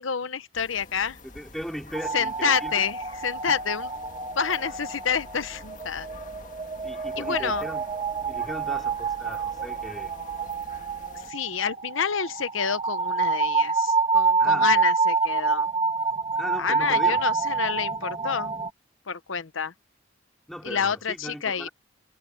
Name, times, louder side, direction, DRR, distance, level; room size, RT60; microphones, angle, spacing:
voice 1, 0.0-1.2 2.1-3.9 4.4-6.1 7.2-7.7 11.1-15.7 16.6-18.5 19.1-19.7 20.6-21.7, left 6 dB, 80° left, 1.0 m, -28 dB
sound 1, 0.5-11.3, left 2 dB, 40° left, 1.9 m, -46 dB
voice 2, 1.2-2.9 3.4-3.6 6.8-7.8 8.3-10.1 14.4-14.7 16.3-17.2 20.5-21.7, equal, ahead, 4.9 m, -37 dB
sound 2, 1.9-18.7, right 4 dB, 25° right, 1.5 m, -27 dB
head